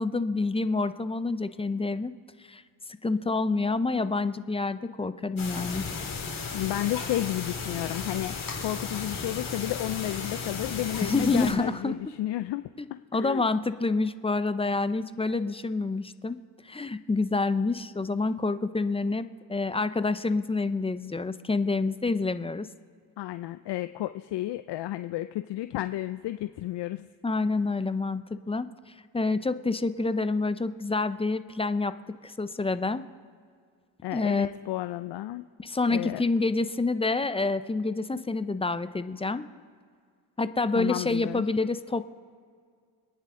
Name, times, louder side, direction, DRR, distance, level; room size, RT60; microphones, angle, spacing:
voice 1, 0.0-2.1 2.5-2.6 3.0-5.9 11.0-12.0 12.8-12.9 13.1-16.4 16.6-22.7 27.2-28.7 29.1-31.9 32.2-33.0 34.1-34.5 35.6-39.5 40.4-42.0, left 3 dB, 15° left, 12 dB, 0.5 m, -27 dB
sound 1, 5.4-11.5, left 5 dB, 45° left, 3.7 m, -35 dB
voice 2, 6.5-8.3 8.6-12.6 13.1-13.4 23.2-27.1 34.0-35.4 35.9-36.2 40.7-41.4, left 15 dB, 60° left, 11 dB, 0.5 m, -32 dB
26.0 x 9.7 x 3.7 m, 2.1 s
cardioid pair, 85°, 47 cm